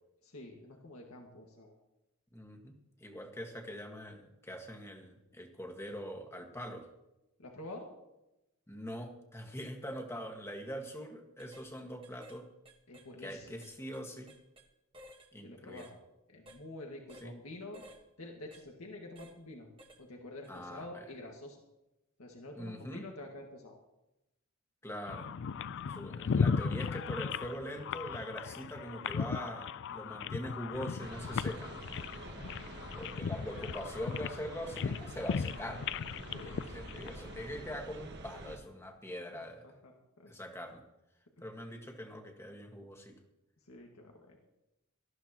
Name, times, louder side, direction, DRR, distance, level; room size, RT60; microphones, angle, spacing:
voice 1, 0.2-1.8 7.4-7.9 12.9-13.6 15.4-16.0 16.3-17.8 18.2-19.7 20.0-21.6 22.2-23.8 29.9-30.2 32.1-33.3 36.3-36.7 39.3-40.3 43.6-44.4, left 2 dB, 85° left, 1 dB, 1.8 m, -48 dB
voice 2, 2.3-2.7 3.0-6.9 8.7-12.5 13.2-14.3 15.3-15.8 17.2-17.3 20.5-21.0 22.5-23.0 24.8-25.3 25.9-31.8 32.9-35.8 36.4-39.7 40.3-40.8 41.4-43.1, equal, 10° left, 3 dB, 1.6 m, -43 dB
sound 1, 10.7-10.9 11.4-11.7 12.0-12.4 12.6-14.7 14.9-15.3 15.8-15.9 16.5-16.6 17.1-17.3 17.7-18.0 18.5-18.6 19.2-19.4 19.8-20.0 20.4-20.6, equal, 25° right, 1.4 m, -56 dB
sound 2, 25.1-37.5, left 6 dB, 55° left, 0.4 m, -37 dB
sound 3, 31.0-38.6, right 2 dB, 50° right, 1.4 m, -47 dB
19.0 x 13.5 x 3.0 m, 0.92 s
head